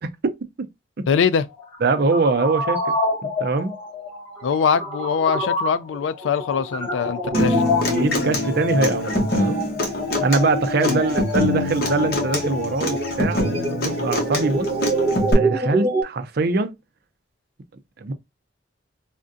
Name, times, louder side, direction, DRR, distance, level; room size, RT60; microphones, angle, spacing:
voice 1, 0.0-0.7 1.0-1.1 1.8-2.9 3.2-3.8 7.9-9.6 10.2-14.7 15.3-16.8 18.0-18.1, right 3 dB, 55° right, 0.5 m, -23 dB
voice 2, 1.1-1.5 4.4-7.6 10.8-11.0, left 6 dB, 90° left, 0.4 m, -22 dB
sound 1, 1.5-16.0, equal, 15° left, 1.9 m, -27 dB
Human voice / Acoustic guitar, 7.3-15.3, left 1 dB, 55° left, 0.9 m, -24 dB
3.5 x 2.2 x 2.5 m
head